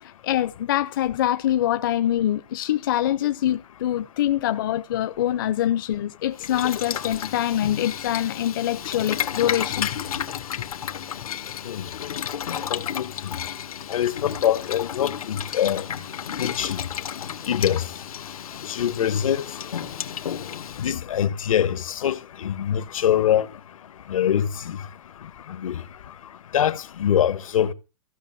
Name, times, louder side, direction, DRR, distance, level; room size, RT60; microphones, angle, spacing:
voice 1, 0.0-9.9, left 12 dB, 40° left, 0.7 m, -24 dB
Boiling, 6.3-20.9, left 9 dB, 90° left, 2.0 m, -32 dB
voice 2, 12.7-13.3 13.9-15.8 16.4-16.8 17.5-17.9 18.7-19.4 20.8-23.5 24.1-24.8 25.5-25.8 26.5-27.7, left 10 dB, 70° left, 1.3 m, -24 dB
15.5 x 6.6 x 9.1 m
hypercardioid pair, 175°, 18 cm